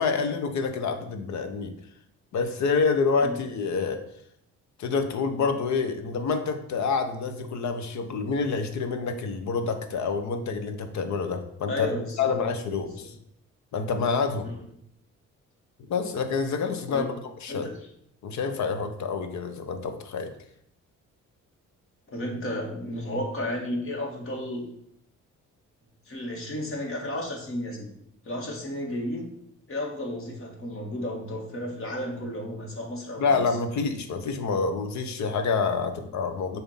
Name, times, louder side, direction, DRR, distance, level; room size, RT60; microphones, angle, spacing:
voice 1, 0.0-1.7 2.3-4.0 4.8-13.1 13.7-14.5 15.9-17.1 17.4-17.7 18.2-20.3 33.2-36.6, left 5 dB, 70° left, 8 dB, 0.9 m, -27 dB
voice 2, 11.7-12.3 12.8-13.1 14.4-14.5 16.9-17.1 17.5-17.7 22.1-24.6 26.1-27.9 28.2-29.3 29.7-33.4, left 1 dB, 45° left, 0 dB, 2.0 m, -33 dB
7.0 x 2.9 x 5.6 m, 0.72 s
cardioid pair, 90°, 30 cm